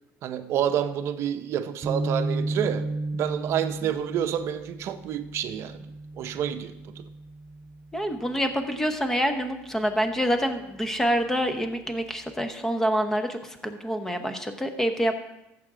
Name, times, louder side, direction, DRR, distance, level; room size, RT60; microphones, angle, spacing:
voice 1, 0.2-5.9 6.2-7.0, right 9 dB, 55° right, 0.7 m, -29 dB
sound 1, 1.8-8.2, right 2 dB, 25° right, 3.0 m, -33 dB
voice 2, 7.9-15.1, equal, 10° left, 0.9 m, -26 dB
14.0 x 7.5 x 3.7 m
cardioid pair, 135°, 6 cm